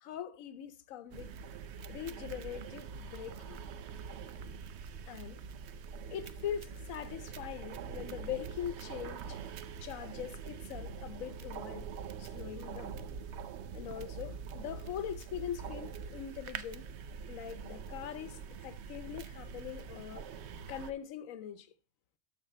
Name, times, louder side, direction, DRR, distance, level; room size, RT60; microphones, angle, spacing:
voice 1, 0.0-1.4 1.9-3.6 5.1-5.4 6.1-9.4 9.8-11.9 12.2-13.0 13.7-16.9 17.3-20.3 20.7-21.7, left 9 dB, 85° left, 1.1 m, -42 dB
sound 1, 1.1-20.9, right 6 dB, 65° right, 0.8 m, -44 dB
13.0 x 4.6 x 4.2 m
omnidirectional pair, 1.4 m